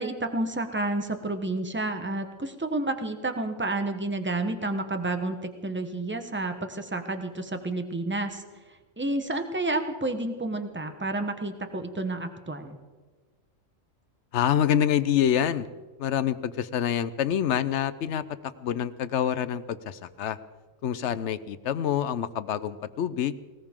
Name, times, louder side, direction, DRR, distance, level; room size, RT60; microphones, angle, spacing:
voice 1, 0.0-8.4 9.0-12.8, right 2 dB, 10° right, 7 dB, 1.0 m, -30 dB
voice 2, 14.3-15.7 16.0-18.2 18.6-20.4 20.8-23.3, left 9 dB, 65° left, 14 dB, 0.9 m, -26 dB
19.5 x 19.0 x 3.7 m, 1.4 s
omnidirectional pair, 1.3 m